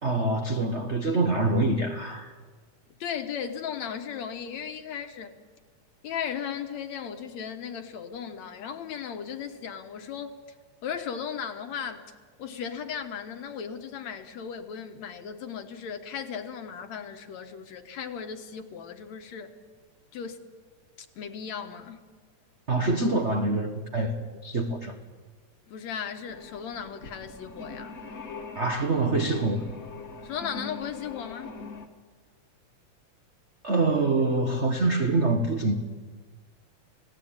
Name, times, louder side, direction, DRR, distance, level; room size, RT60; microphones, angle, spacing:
voice 1, 0.0-2.3 22.7-25.0 28.5-29.6 33.6-35.7, right 2 dB, 60° right, 4 dB, 0.6 m, -25 dB
voice 2, 3.0-5.3 6.0-10.6 10.8-12.0 12.4-19.5 20.1-20.4 21.0-22.0 25.7-28.0 30.2-31.6, left 7 dB, 65° left, 6 dB, 2.5 m, -36 dB
sound 1, 26.3-31.9, left 4 dB, 35° left, 1.6 m, -42 dB
29.5 x 17.5 x 8.9 m, 1.5 s
omnidirectional pair, 3.5 m